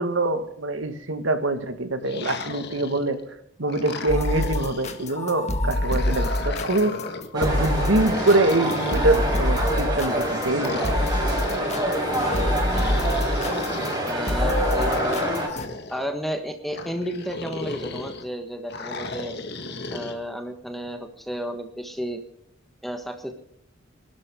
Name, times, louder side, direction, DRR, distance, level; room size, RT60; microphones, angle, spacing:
voice 1, 0.0-3.2 3.6-6.9 7.3-10.8, right 2 dB, 80° right, 9 dB, 1.8 m, -24 dB
sound 1, 2.0-3.2 3.7-5.1 5.7-7.3 8.0-9.7 10.6-11.9 12.6-14.0 14.7-16.1 16.7-18.2 18.7-20.2, left 3 dB, 60° left, 1.9 m, -36 dB
sound 2, 4.1-15.7, left 1 dB, 35° left, 1.7 m, -27 dB
sound 3, 7.3-15.5, right 1 dB, 20° right, 5.1 m, -26 dB
voice 2, 12.7-13.0 14.0-15.2 15.9-19.4 19.9-22.2 22.8-23.4, equal, ahead, 5 dB, 1.4 m, -32 dB
24.0 x 12.5 x 3.8 m, 0.68 s
head